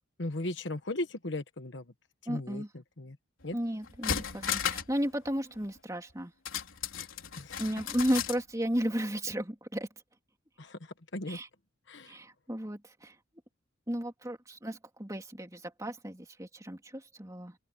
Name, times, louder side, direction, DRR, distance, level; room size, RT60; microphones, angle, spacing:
voice 1, 0.2-1.9 2.2-3.2 3.4-3.6 7.4-7.6 10.6-11.4 11.9-12.2, left 1 dB, 60° left, 1.3 m, -37 dB
voice 2, 2.3-2.7 3.5-6.3 7.6-9.9 11.3-11.5 12.1-13.1 13.9-17.5, equal, 15° right, 3.2 m, -34 dB
sound 1, 3.4-3.5 3.8-5.0 5.3-5.4 6.5-8.4 8.8-8.9, left 8 dB, 75° left, 3.8 m, -34 dB
open air
head